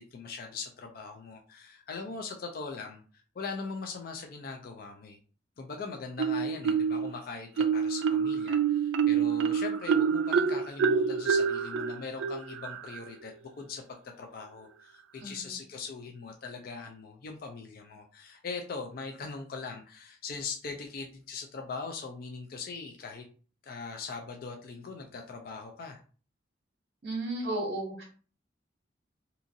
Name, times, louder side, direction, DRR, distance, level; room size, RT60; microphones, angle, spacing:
voice 1, 0.0-3.0 3.3-5.2 5.6-13.8 14.2-23.2 23.6-26.0, left 4 dB, 50° left, 3 dB, 0.4 m, -41 dB
Marimba xylophone, 6.2-7.1 7.6-13.1, right 6 dB, 85° right, 0.3 m, -27 dB
voice 2, 15.2-15.5 27.0-28.0, right 2 dB, 55° right, -2 dB, 0.7 m, -34 dB
2.8 x 2.5 x 2.5 m, 0.40 s
head